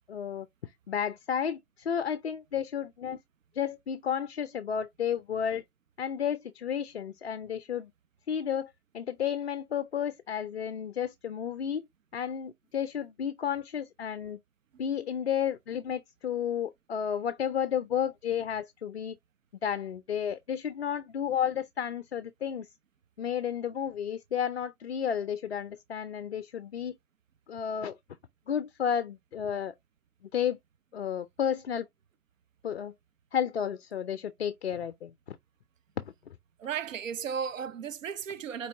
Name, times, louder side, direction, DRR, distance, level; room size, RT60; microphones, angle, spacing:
voice 1, 0.1-3.2 3.5-5.6 6.0-7.9 8.3-11.8 12.1-14.4 14.8-19.2 19.6-22.7 23.2-27.0 27.5-28.0 28.5-29.7 30.3-30.6 30.9-31.9 32.6-32.9 33.3-35.4 36.0-36.1, left 8 dB, 50° left, 0.4 m, -32 dB
voice 2, 36.6-38.7, right 7 dB, 60° right, 0.6 m, -35 dB
4.5 x 4.1 x 2.9 m
hypercardioid pair, 150°, 44 cm